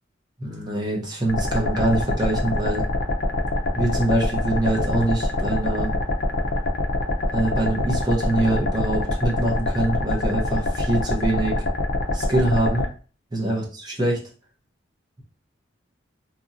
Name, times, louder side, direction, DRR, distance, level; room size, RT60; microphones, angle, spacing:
voice 1, 0.4-2.8 3.7-5.9 7.3-11.6 12.1-12.9 13.3-14.2, right 1 dB, 20° right, -2 dB, 0.8 m, -24 dB
sound 1, 1.3-12.9, left 2 dB, 50° left, 0.5 m, -25 dB
2.9 x 2.7 x 2.5 m, 0.37 s
head